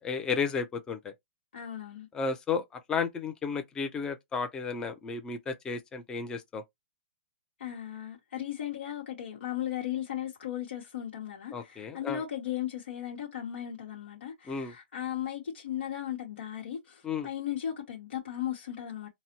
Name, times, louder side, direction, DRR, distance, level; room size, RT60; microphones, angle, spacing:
voice 1, 0.0-1.1 2.1-6.6 11.5-12.2 14.5-14.7 17.0-17.3, left 5 dB, 10° left, 0.4 m, -33 dB
voice 2, 1.5-2.1 7.6-19.1, left 11 dB, 80° left, 1.0 m, -36 dB
3.9 x 2.0 x 2.8 m
hypercardioid pair, 150°, 6 cm